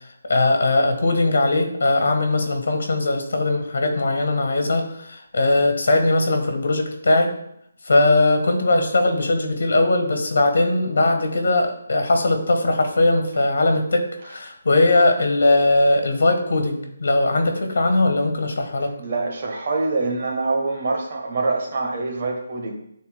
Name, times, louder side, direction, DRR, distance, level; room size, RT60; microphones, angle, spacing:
voice 1, 0.2-7.3 7.8-18.9, left 2 dB, 75° left, 5 dB, 1.5 m, -20 dB
voice 2, 19.0-22.7, right 3 dB, 40° right, 1 dB, 1.2 m, -25 dB
12.0 x 4.1 x 2.2 m, 0.75 s
hypercardioid pair, 170°, 0 cm